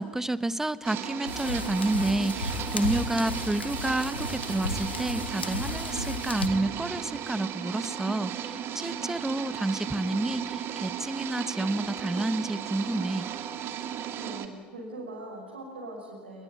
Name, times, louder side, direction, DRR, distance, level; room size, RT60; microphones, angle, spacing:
voice 1, 0.0-13.3, right 2 dB, 10° right, 16 dB, 1.2 m, -29 dB
sound 1, 0.8-14.5, right 9 dB, 45° right, 2.5 m, -35 dB
sound 2, 1.3-6.5, left 3 dB, 85° left, 1.8 m, -34 dB
voice 2, 14.1-16.4, right 1 dB, 80° right, -4 dB, 6.7 m, -41 dB
28.5 x 21.5 x 9.6 m, 1.5 s
figure-of-eight pair, 70°, 6 cm